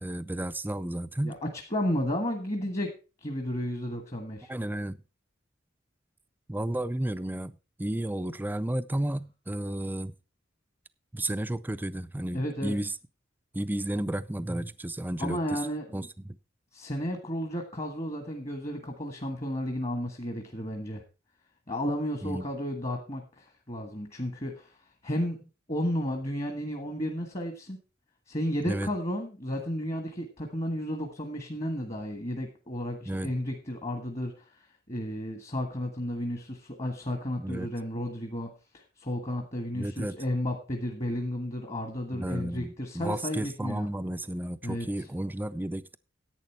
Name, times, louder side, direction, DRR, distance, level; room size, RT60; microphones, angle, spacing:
voice 1, 0.0-1.4 4.5-5.0 6.5-10.1 11.1-12.9 13.5-15.6 15.9-16.4 22.2-22.5 28.6-28.9 33.1-33.3 37.4-37.7 39.7-40.2 42.1-46.0, right 1 dB, 10° right, 15 dB, 0.4 m, -32 dB
voice 2, 1.2-2.9 3.2-4.5 12.3-12.7 15.2-16.1 16.7-21.0 21.7-24.7 25.0-25.4 25.7-27.8 28.3-43.9 44.6-45.1, equal, 35° left, 5 dB, 1.5 m, -33 dB
11.0 x 8.6 x 4.5 m, 0.32 s
head